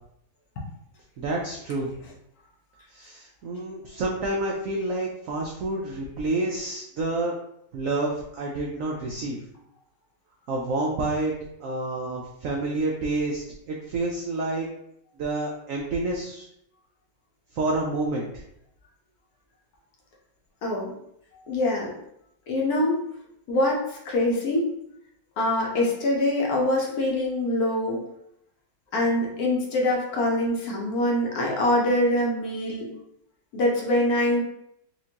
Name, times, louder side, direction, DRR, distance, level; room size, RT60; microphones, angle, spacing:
voice 1, 1.2-1.9 2.9-7.4 7.7-9.4 10.5-11.3 11.6-14.7 15.2-16.4 17.5-18.4, right 2 dB, 80° right, -1 dB, 0.7 m, -28 dB
voice 2, 20.6-20.9 21.5-21.9 22.5-23.0 23.5-24.6 25.4-28.0 28.9-32.9 33.5-34.4, left 1 dB, 60° left, -2 dB, 1.1 m, -24 dB
4.3 x 2.5 x 2.8 m, 0.76 s
omnidirectional pair, 2.0 m